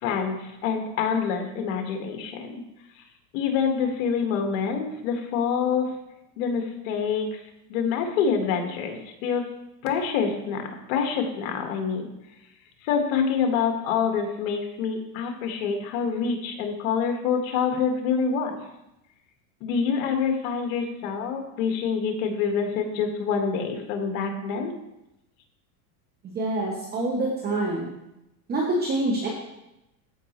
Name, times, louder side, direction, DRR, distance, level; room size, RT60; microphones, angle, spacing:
voice 1, 0.0-2.6 3.3-5.9 6.4-7.4 7.7-9.5 9.8-12.0 12.8-18.6 19.6-24.7, left 6 dB, 65° left, 4 dB, 1.7 m, -26 dB
voice 2, 26.2-27.9 28.5-29.3, right 2 dB, 20° right, -1 dB, 1.0 m, -26 dB
13.5 x 5.0 x 3.1 m, 0.89 s
supercardioid pair, 145°, 44 cm